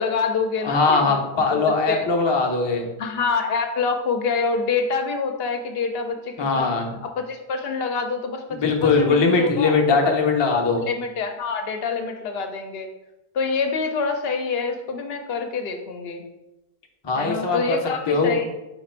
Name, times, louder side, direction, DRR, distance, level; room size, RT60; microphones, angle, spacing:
voice 1, 0.0-1.6 1.9-2.1 3.0-6.7 7.0-9.7 10.0-10.1 10.8-12.9 13.3-16.2 17.1-18.4, left 5 dB, 75° left, 5 dB, 0.8 m, -26 dB
voice 2, 0.6-2.9 6.4-6.9 8.5-10.9 17.0-17.8 18.1-18.3, left 4 dB, 30° left, 1 dB, 0.6 m, -20 dB
4.9 x 2.5 x 4.3 m, 0.93 s
omnidirectional pair, 1.0 m